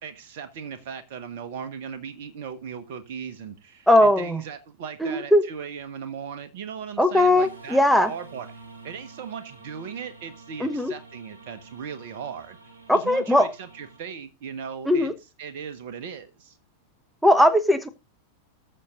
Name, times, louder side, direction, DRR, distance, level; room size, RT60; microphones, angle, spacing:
voice 1, 0.0-15.1 15.4-16.6, right 7 dB, 50° right, 1.3 m, -38 dB
voice 2, 3.9-4.4 5.0-5.4 7.0-8.1 10.6-10.9 12.9-13.5 14.9-15.1 17.2-17.9, left 1 dB, ahead, 1.0 m, -19 dB
sound 1, 7.4-14.0, right 4 dB, 70° right, 2.5 m, -48 dB
19.5 x 6.7 x 2.5 m
figure-of-eight pair, 90°, 0 cm